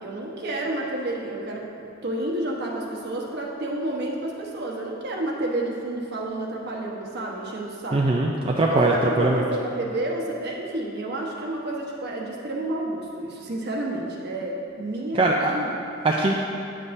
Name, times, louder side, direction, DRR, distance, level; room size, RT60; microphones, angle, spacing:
voice 1, 0.0-8.1 8.7-15.9, right 1 dB, 55° right, -2 dB, 1.1 m, -30 dB
voice 2, 7.9-9.4 15.2-15.5 16.0-16.3, right 2 dB, 25° right, -2 dB, 0.4 m, -21 dB
9.7 x 7.4 x 2.6 m, 2.6 s
head